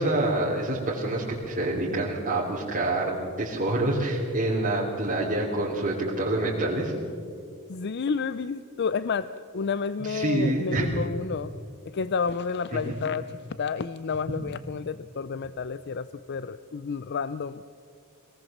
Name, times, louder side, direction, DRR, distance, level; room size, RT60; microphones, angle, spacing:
voice 1, 0.0-6.9 10.1-10.9 12.7-13.0, right 2 dB, 40° right, -6 dB, 3.1 m, -27 dB
voice 2, 7.7-11.5 11.8-17.6, left 5 dB, 50° left, 14 dB, 0.5 m, -30 dB
24.5 x 18.5 x 7.3 m, 2.4 s
head